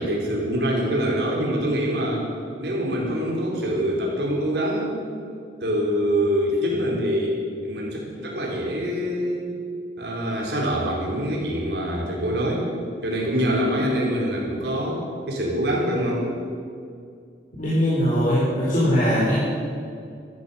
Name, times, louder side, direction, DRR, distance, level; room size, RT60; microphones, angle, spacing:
voice 1, 0.0-2.3 2.6-5.0 5.6-9.6 10.0-12.7 13.0-15.0 15.3-16.2, equal, 75° right, -3 dB, 4.2 m, -25 dB
voice 2, 17.6-19.4, equal, 45° left, -8 dB, 4.6 m, -20 dB
14.5 x 13.5 x 7.1 m, 2.4 s
head